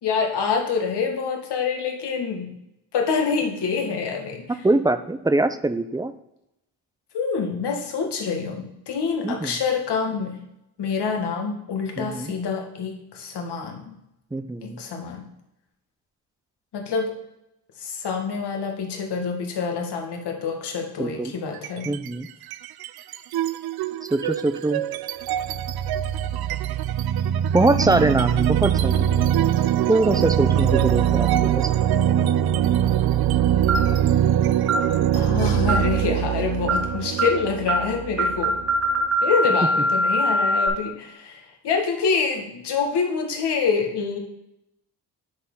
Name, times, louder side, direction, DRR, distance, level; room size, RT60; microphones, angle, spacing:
voice 1, 0.0-2.5 2.9-4.4 7.1-10.4 10.8-14.0 14.8-15.2 16.7-17.1 17.8-21.9 35.1-38.5 39.2-41.4 41.6-44.2, left 5 dB, 65° left, 2 dB, 1.8 m, -26 dB
voice 2, 4.6-6.1 9.2-9.6 12.0-12.3 14.3-14.8 21.0-21.3 21.8-22.3 24.1-24.8 27.5-29.1 29.9-31.7, right 2 dB, 10° right, 11 dB, 0.6 m, -23 dB
sound 1, 21.5-22.1 22.4-39.0, right 10 dB, 60° right, 0.5 m, -23 dB
sound 2, 33.7-34.0 34.7-34.9 35.7-36.0 36.7-36.9 37.2-37.4 37.7-37.9 38.2-40.7, equal, 35° right, 1.2 m, -22 dB
9.7 x 4.1 x 3.8 m, 0.84 s
cardioid pair, 65°, 43 cm